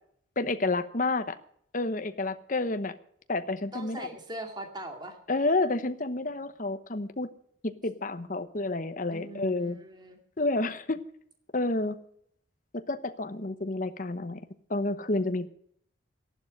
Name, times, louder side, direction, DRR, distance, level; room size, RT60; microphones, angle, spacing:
voice 1, 0.4-1.4 1.7-2.9 3.3-4.1 5.3-7.3 7.6-9.8 10.4-11.0 11.5-12.0 12.7-14.4 14.7-15.5, left 2 dB, 40° left, 10 dB, 1.0 m, -29 dB
voice 2, 3.7-5.2 9.1-10.2, right 1 dB, 20° right, 4 dB, 2.3 m, -41 dB
13.0 x 11.5 x 6.6 m, 0.66 s
head